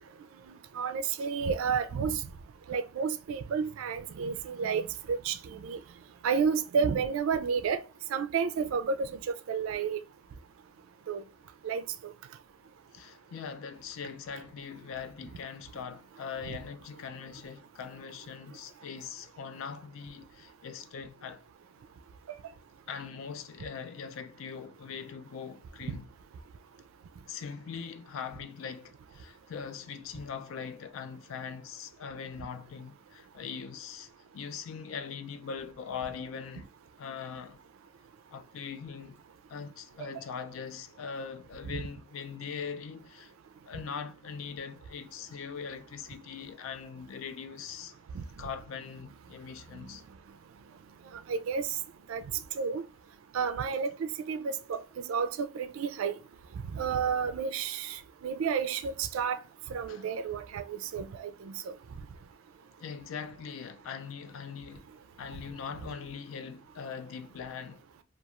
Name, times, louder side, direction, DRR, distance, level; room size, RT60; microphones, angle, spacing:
voice 1, 0.8-2.2 2.7-4.8 5.1-5.8 6.2-7.8 8.1-9.1 9.5-10.0 11.1-11.2 11.6-12.1 41.7-41.8 48.1-48.2 51.3-51.7 52.1-52.2 52.6-52.8 53.3-54.8 55.1-56.2 56.7-58.0 58.2-59.4 59.7-61.5, right 6 dB, 85° right, 0.3 m, -31 dB
voice 2, 12.9-21.4 22.9-26.1 27.3-36.7 37.0-37.6 38.3-39.2 39.5-43.3 43.7-47.9 48.4-50.0 59.9-60.1 62.8-64.9 65.2-67.8, left 6 dB, 80° left, 0.3 m, -41 dB
2.9 x 2.3 x 2.3 m
head